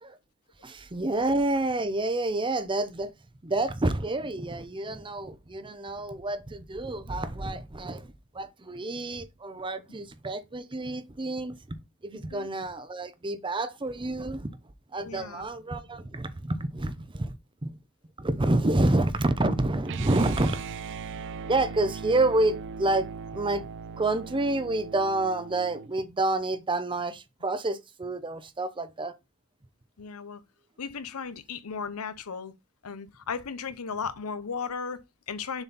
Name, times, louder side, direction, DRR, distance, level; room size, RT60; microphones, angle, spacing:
voice 1, 0.6-3.1 3.4-11.6 12.0-14.6 14.9-17.3 17.6-17.7 18.2-20.6 21.4-23.6 24.0-29.2, right 2 dB, 25° right, 0.7 m, -28 dB
voice 2, 12.1-12.5 15.0-15.5 30.0-30.4 30.8-32.5 32.8-35.6, left 5 dB, 85° left, 0.7 m, -36 dB
sound 1, 19.8-25.9, right 5 dB, 55° right, 0.5 m, -39 dB
6.9 x 4.3 x 4.1 m
head